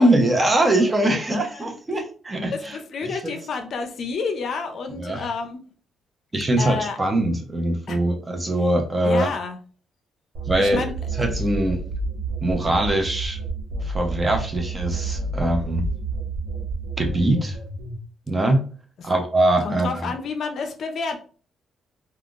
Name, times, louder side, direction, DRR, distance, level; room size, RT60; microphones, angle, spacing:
voice 1, 0.0-2.8 3.0-3.3 5.0-5.3 6.3-9.3 10.5-10.9 11.2-11.8 12.4-13.4 13.8-15.8 17.0-17.6 18.3-18.6 19.0-20.1, right 1 dB, 20° right, 4 dB, 0.7 m, -22 dB
voice 2, 2.5-5.6 6.6-7.0 7.9-8.0 9.0-9.6 10.6-10.9 19.0-19.1 19.6-21.2, left 4 dB, 60° left, 6 dB, 0.5 m, -29 dB
sound 1, 10.3-18.0, right 3 dB, 75° right, 1.0 m, -29 dB
3.5 x 2.3 x 2.4 m, 0.41 s
cardioid pair, 90°, 0 cm